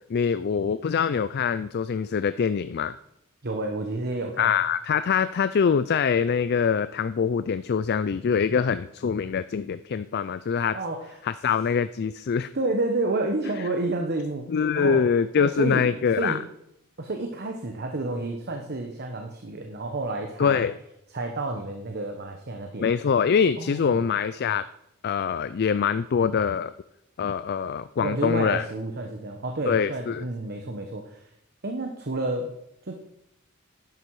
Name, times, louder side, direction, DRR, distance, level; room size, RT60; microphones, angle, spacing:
voice 1, 0.1-3.0 4.4-10.8 11.2-12.5 14.5-16.4 20.4-20.8 22.8-24.7 25.0-26.7 27.2-28.6 29.7-30.2, left 6 dB, 50° left, 14 dB, 0.4 m, -24 dB
voice 2, 3.4-4.5 10.7-11.1 12.5-14.5 14.8-15.0 15.4-15.8 16.2-16.4 17.0-20.7 21.1-22.9 23.6-24.1 28.0-31.2 31.6-32.5 32.8-33.0, right 2 dB, 50° right, 4 dB, 1.1 m, -30 dB
11.5 x 11.0 x 4.8 m, 0.80 s
head